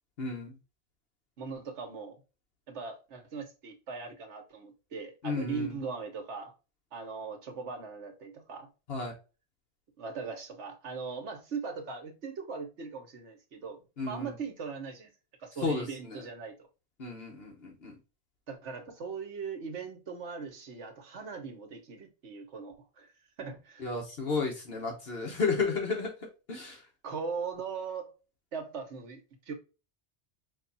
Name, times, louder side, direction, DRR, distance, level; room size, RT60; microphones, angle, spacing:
voice 1, 0.2-0.6 5.2-5.8 8.9-9.1 14.0-14.3 15.6-16.2 17.0-17.9 23.8-26.1 26.5-26.8, left 4 dB, 60° left, 1.3 m, -32 dB
voice 2, 1.4-2.2 2.7-6.5 6.9-8.7 10.0-13.8 14.0-15.1 15.4-16.5 18.5-23.1 23.4-23.9 27.0-28.2 28.5-29.5, right 5 dB, 85° right, 1.3 m, -40 dB
5.1 x 2.4 x 3.9 m
omnidirectional pair, 1.1 m